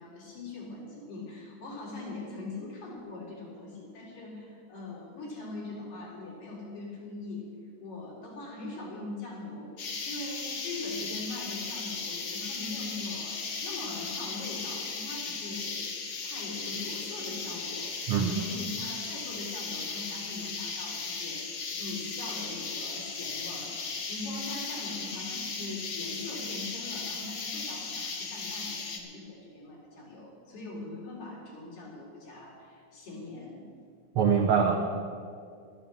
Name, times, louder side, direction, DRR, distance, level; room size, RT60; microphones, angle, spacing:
voice 1, 0.0-7.5 7.8-15.9 16.2-21.5 21.8-33.6, left 2 dB, 90° left, -5 dB, 5.1 m, -41 dB
sound 1, 9.8-29.0, left 4 dB, 55° left, 1.3 m, -36 dB
voice 2, 18.1-18.4 34.1-34.8, right 6 dB, 85° right, 3 dB, 1.2 m, -23 dB
12.5 x 9.1 x 8.2 m, 2.2 s
omnidirectional pair, 3.7 m